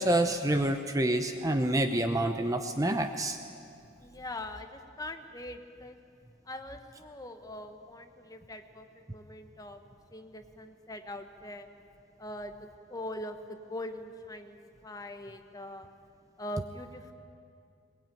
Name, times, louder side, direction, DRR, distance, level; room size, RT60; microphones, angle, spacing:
voice 1, 0.0-3.4, right 1 dB, 15° right, 7 dB, 0.7 m, -27 dB
voice 2, 4.0-6.0 6.5-9.8 10.1-11.7 12.2-12.5 12.9-15.9 16.4-17.1, left 1 dB, 15° left, 7 dB, 1.1 m, -42 dB
21.5 x 20.5 x 9.2 m, 2.4 s
head